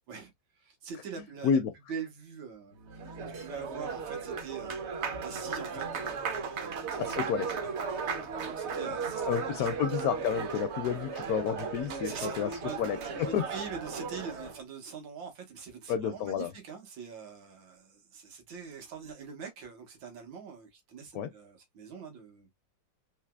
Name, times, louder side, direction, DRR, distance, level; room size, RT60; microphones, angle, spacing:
voice 1, 0.1-1.6 1.9-4.7 5.2-6.2 6.6-7.3 7.9-9.9 12.0-12.8 13.2-22.5, right 6 dB, 85° right, 2.0 m, -44 dB
Applause, 2.8-14.6, right 5 dB, 60° right, 0.7 m, -36 dB
voice 2, 7.0-7.7 9.2-13.4 15.9-16.5 21.1-21.3, left 8 dB, 75° left, 0.8 m, -30 dB
4.1 x 2.9 x 2.2 m
omnidirectional pair, 2.0 m